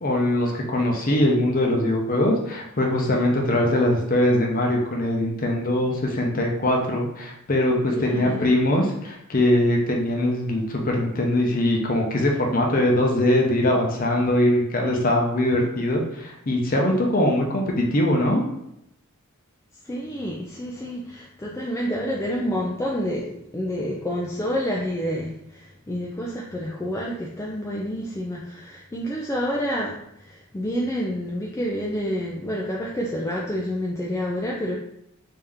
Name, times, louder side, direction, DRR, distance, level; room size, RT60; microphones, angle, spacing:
voice 1, 0.0-18.4, left 1 dB, 40° left, 0 dB, 0.7 m, -22 dB
voice 2, 7.9-8.5 19.8-34.8, equal, 15° left, -3 dB, 0.3 m, -28 dB
3.6 x 2.8 x 3.4 m, 0.79 s
head